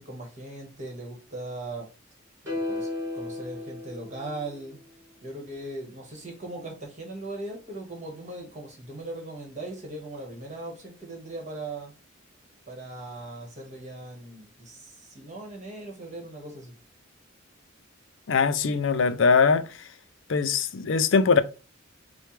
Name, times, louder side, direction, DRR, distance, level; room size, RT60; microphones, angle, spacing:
voice 1, 0.0-1.9 2.5-4.8 5.2-11.9 12.7-16.7, right 2 dB, 35° right, 1.5 m, -39 dB
sound 1, 2.5-4.8, left 2 dB, 15° right, 2.2 m, -34 dB
voice 2, 18.3-19.7 20.3-21.4, left 5 dB, 65° left, 0.5 m, -21 dB
6.5 x 2.2 x 3.3 m
head